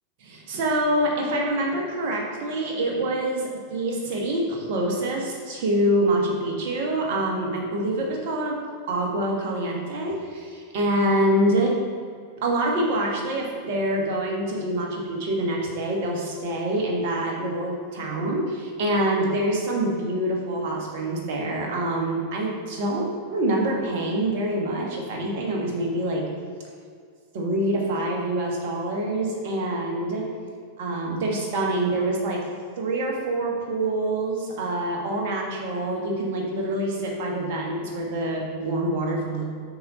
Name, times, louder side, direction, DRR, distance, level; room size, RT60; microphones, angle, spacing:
voice 1, 0.2-8.6 8.9-11.8 12.4-26.3 27.3-30.3 30.8-32.5 32.8-39.4, right 1 dB, 50° right, -1 dB, 1.4 m, -26 dB
6.5 x 4.1 x 5.3 m, 2.1 s
figure-of-eight pair, 90°, 0 cm